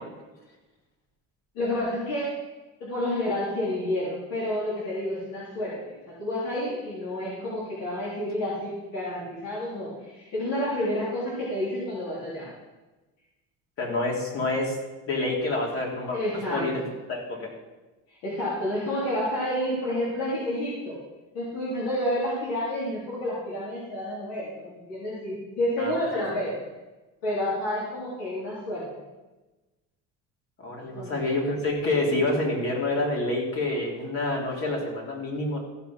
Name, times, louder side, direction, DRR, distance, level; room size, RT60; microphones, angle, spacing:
voice 1, 1.5-2.3 2.8-12.5 16.1-16.9 18.1-21.0 21.3-26.5 27.2-28.9 30.9-31.1, left 1 dB, 90° left, -8 dB, 3.7 m, -30 dB
voice 2, 13.8-14.7 15.1-16.2 16.5-16.8 17.1-17.5 25.8-26.2 30.6-35.6, left 2 dB, 45° left, -2 dB, 3.6 m, -27 dB
15.0 x 5.7 x 5.8 m, 1.1 s
cardioid pair, 125°, 32 cm